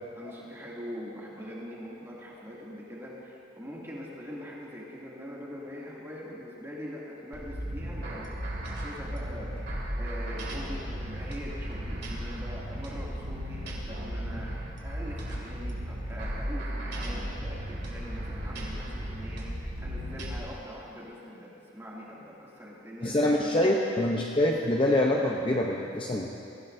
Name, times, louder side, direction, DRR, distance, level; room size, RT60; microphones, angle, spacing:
voice 1, 0.2-19.4 19.8-23.2, equal, 15° right, -6 dB, 2.4 m, -43 dB
sound 1, 7.3-20.4, equal, 55° right, 2.4 m, -35 dB
voice 2, 23.0-26.3, left 1 dB, 25° left, -1 dB, 0.7 m, -25 dB
23.0 x 15.0 x 2.7 m, 2.7 s
head